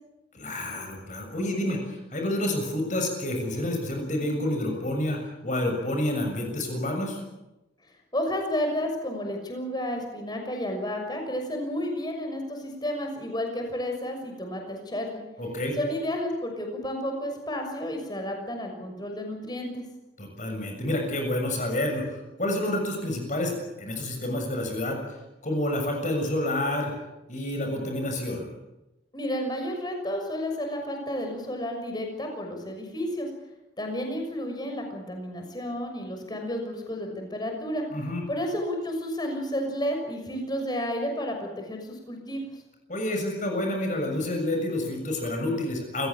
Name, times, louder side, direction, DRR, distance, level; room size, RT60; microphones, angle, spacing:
voice 1, 0.3-7.2 15.4-15.8 20.2-25.0 25.4-26.9 27.3-28.5 37.9-38.2 42.9-46.1, left 1 dB, 45° left, 3 dB, 6.9 m, -29 dB
voice 2, 8.1-15.2 15.7-19.8 29.1-33.3 33.8-37.9 38.3-42.4, equal, 25° left, 3 dB, 6.3 m, -31 dB
28.5 x 17.0 x 8.8 m, 0.97 s
head